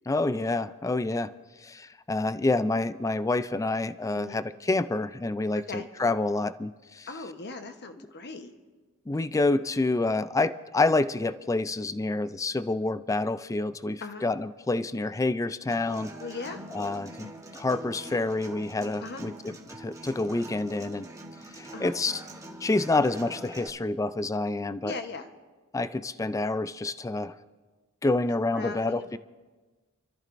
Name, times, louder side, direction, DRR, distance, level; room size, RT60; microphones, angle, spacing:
voice 1, 0.1-1.3 1.6-7.1 9.1-16.1 16.7-21.1 21.6-22.2 22.6-24.9 25.7-27.3 28.0-29.2, left 2 dB, 15° left, 14 dB, 0.3 m, -28 dB
voice 2, 5.6-5.9 7.1-8.5 14.0-14.2 16.2-16.6 19.0-19.2 21.7-21.9 24.8-25.3 28.5-29.2, left 3 dB, 50° left, 7 dB, 1.0 m, -38 dB
Human voice / Acoustic guitar, 15.7-23.7, right 1 dB, 15° right, 1.2 m, -44 dB
27.5 x 14.0 x 2.6 m, 1.3 s
head